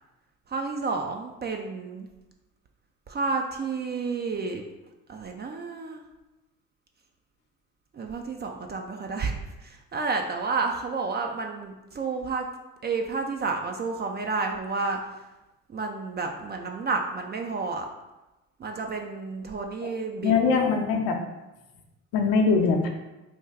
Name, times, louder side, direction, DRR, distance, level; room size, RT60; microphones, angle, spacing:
voice 1, 0.5-2.1 3.1-4.6 5.1-6.0 7.9-9.3 9.6-12.5 12.8-15.2 15.7-17.9 18.6-20.7, right 4 dB, 25° right, 3 dB, 0.4 m, -30 dB
voice 2, 20.2-21.2 22.1-22.9, left 4 dB, 65° left, 3 dB, 0.7 m, -22 dB
3.4 x 2.3 x 3.3 m, 1.0 s
hypercardioid pair, 55°, 39 cm